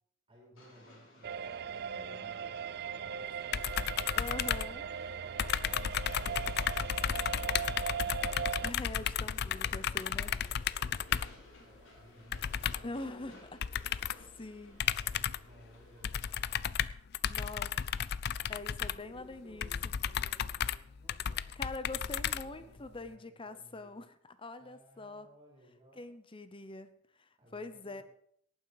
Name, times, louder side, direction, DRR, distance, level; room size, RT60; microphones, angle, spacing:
voice 1, 0.3-3.8 5.1-7.8 10.1-13.3 14.1-16.5 18.3-24.0 24.6-26.1 27.4-28.0, equal, 25° right, -3 dB, 5.0 m, -60 dB
Train, 0.6-16.7, left 1 dB, 75° left, 4.8 m, -58 dB
sound 1, 1.2-8.7, right 7 dB, 55° right, 0.4 m, -39 dB
voice 2, 1.9-2.3 4.1-4.9 8.4-10.3 12.8-13.4 13.8-14.1 14.4-14.8 17.3-17.7 18.5-19.7 21.6-25.3 26.0-28.0, left 2 dB, 25° left, 12 dB, 0.8 m, -44 dB
sound 2, 3.5-5.1 5.4-11.4 12.3-13.0 13.6-14.3 14.8-15.5 16.0-22.9, left 9 dB, 55° left, 0.4 m, -34 dB
18.0 x 9.4 x 4.9 m, 0.65 s
head